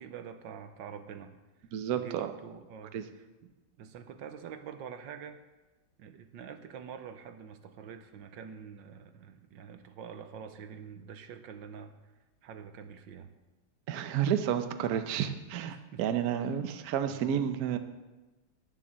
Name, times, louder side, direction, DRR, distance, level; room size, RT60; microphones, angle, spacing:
voice 1, 0.0-1.7 1.9-3.5 3.8-5.4 6.0-12.1 12.4-13.3 15.7-16.2 17.1-17.4, right 7 dB, 80° right, 8 dB, 1.5 m, -46 dB
voice 2, 1.7-2.3 2.9-3.0 13.9-17.8, right 9 dB, 60° right, 8 dB, 1.1 m, -31 dB
11.5 x 7.6 x 7.3 m, 1.1 s
omnidirectional pair, 2.0 m